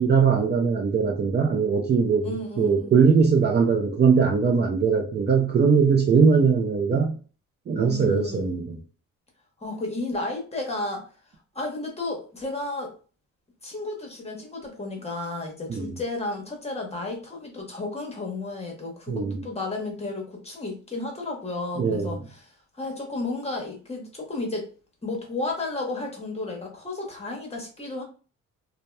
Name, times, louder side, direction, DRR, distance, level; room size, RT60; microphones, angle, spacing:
voice 1, 0.0-7.2 7.7-8.8 15.7-15.9 19.1-19.4 21.8-22.2, right 5 dB, 35° right, 2 dB, 0.4 m, -21 dB
voice 2, 2.2-2.9 7.8-8.5 9.6-11.1 11.5-12.9 13.6-22.5 22.7-24.7 25.0-28.0, left 2 dB, 20° left, 1 dB, 0.9 m, -32 dB
2.7 x 2.1 x 2.2 m, 0.38 s
cardioid pair, 90°, 30 cm